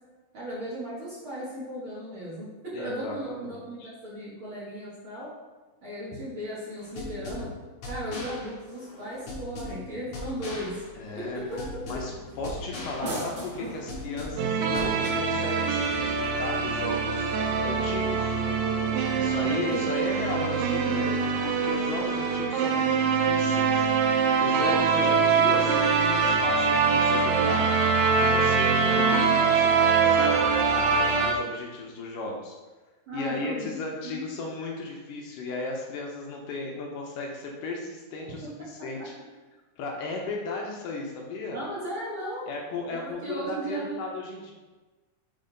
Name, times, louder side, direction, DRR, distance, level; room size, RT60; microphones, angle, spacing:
voice 1, 0.3-5.3 5.8-7.5 7.9-10.8 11.2-11.6 19.1-19.9 33.1-34.3 41.5-42.4 43.0-44.0, right 1 dB, 45° right, -8 dB, 2.1 m, -36 dB
voice 2, 2.7-3.9 7.4-7.5 11.0-11.5 11.9-12.1 12.4-17.4 17.6-18.4 19.2-23.9 24.4-32.6 33.1-39.1 39.8-41.6 42.5-44.5, left 3 dB, 75° left, 0 dB, 2.4 m, -35 dB
sound 1, 6.8-15.1, left 1 dB, 55° left, 2.4 m, -40 dB
sound 2, 10.5-17.9, right 1 dB, 60° right, 3.1 m, -42 dB
sound 3, 14.4-31.3, right 5 dB, 80° right, 2.4 m, -24 dB
6.4 x 4.1 x 5.1 m, 1.2 s
omnidirectional pair, 4.1 m